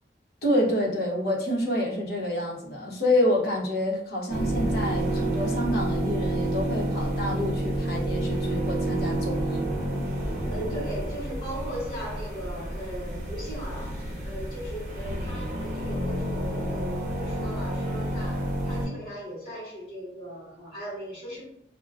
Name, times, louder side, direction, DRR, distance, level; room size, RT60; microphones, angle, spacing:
voice 1, 0.4-9.7, left 1 dB, 60° left, -3 dB, 0.9 m, -27 dB
sound 1, 4.3-18.9, right 1 dB, 45° right, 0.7 m, -29 dB
voice 2, 10.5-21.4, right 1 dB, 30° left, -9 dB, 1.2 m, -38 dB
2.3 x 2.2 x 3.3 m, 0.76 s
head